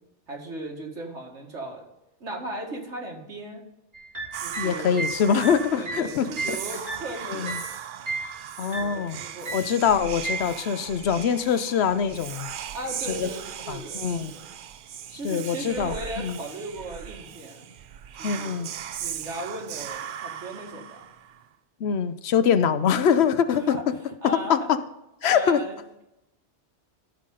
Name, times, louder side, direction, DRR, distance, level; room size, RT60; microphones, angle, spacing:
voice 1, 0.3-1.9 2.2-3.6 4.4-5.0 5.8-7.6 8.6-9.6 12.7-14.5 15.1-17.7 18.2-18.6 19.0-21.1 23.5-24.7 25.2-26.0, right 1 dB, 80° right, 0 dB, 2.2 m, -37 dB
sound 1, 3.9-7.7 8.1-8.4 8.7-9.1 9.5-9.8 10.2-10.5, right 3 dB, 45° right, 1.9 m, -33 dB
Whispering, 4.3-21.5, right 9 dB, 60° right, 0.6 m, -38 dB
voice 2, 4.6-6.6 7.3-7.6 8.6-9.2 9.5-12.5 13.2-13.3 13.7-14.3 15.2-16.4 18.2-18.7 21.8-23.8 24.5-24.6 25.2-25.6, left 7 dB, 70° left, 11 dB, 0.9 m, -24 dB
14.0 x 5.7 x 3.8 m, 0.91 s
omnidirectional pair, 1.2 m